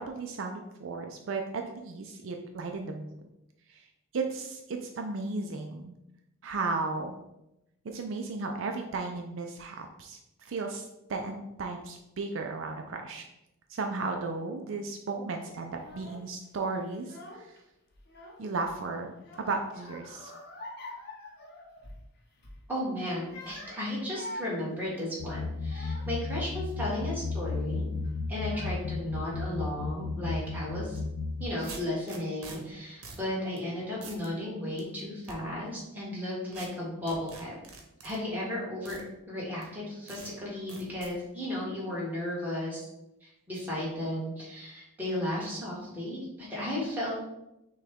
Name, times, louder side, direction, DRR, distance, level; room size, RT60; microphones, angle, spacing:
voice 1, 0.0-3.1 3.7-3.8 4.1-5.9 6.4-7.2 7.8-13.2 13.7-17.5 18.4-19.1 19.4-20.3, right 3 dB, 60° right, 3 dB, 0.4 m, -35 dB
Child speech kid speaking / Crying sobbing, 15.8-16.3 16.9-17.6 17.9-18.7 19.2-22.1 22.4-22.6 23.1-26.3 26.9-27.3 28.0-28.1 28.4-29.1, left 1 dB, 45° left, 0.7 m, -46 dB
voice 2, 22.7-27.9 28.3-31.0 31.4-37.6 38.0-39.0 39.3-42.9 43.2-47.2, left 1 dB, 10° right, -6 dB, 1.4 m, -34 dB
sound 1, 25.2-31.5, left 3 dB, 90° left, 0.4 m, -34 dB
sound 2, 30.9-31.0 31.6-32.6 33.0-33.3 33.6-33.7 34.0-34.3 34.8-35.4 36.5-36.7 37.1-38.2 38.9-39.0 39.6-39.7 40.1-40.3 40.7-41.1, right 4 dB, 85° right, 0.9 m, -45 dB
6.2 x 2.3 x 3.5 m, 0.89 s
head